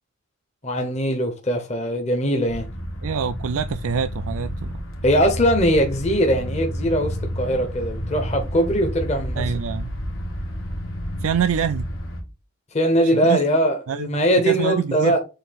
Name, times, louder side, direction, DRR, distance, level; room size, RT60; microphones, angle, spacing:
voice 1, 0.6-2.7 5.0-9.4 12.7-15.2, equal, 30° left, 1.1 m, -21 dB
sound 1, 2.5-12.2, equal, 65° left, 1.9 m, -30 dB
voice 2, 3.0-4.8 9.4-9.9 11.2-11.9 13.1-13.4 13.9-15.2, right 7 dB, 70° right, 0.4 m, -25 dB
7.7 x 2.8 x 4.3 m
head